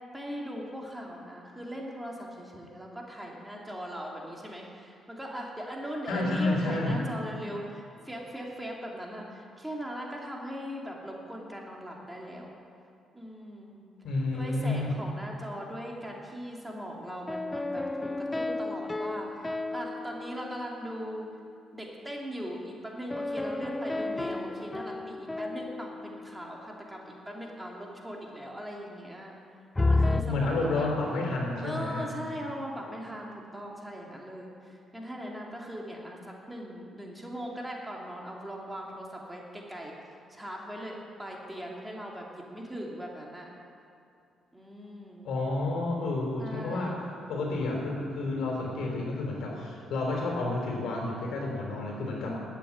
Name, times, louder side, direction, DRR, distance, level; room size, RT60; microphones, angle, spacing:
voice 1, 0.1-12.6 13.1-13.8 14.3-21.3 21.7-29.4 29.9-30.9 31.6-39.9 40.3-43.5 44.5-45.3 46.4-47.0 52.2-52.4, equal, 10° right, -2 dB, 2.5 m, -40 dB
voice 2, 6.1-7.0 14.0-15.0 30.1-32.1 45.2-47.0 47.3-52.4, left 2 dB, 75° left, -1 dB, 3.5 m, -30 dB
sound 1, 17.3-21.1 23.1-26.6 29.8-30.2, left 2 dB, 15° left, 0.5 m, -32 dB
12.0 x 8.4 x 8.4 m, 2.6 s
cardioid pair, 90°, 0 cm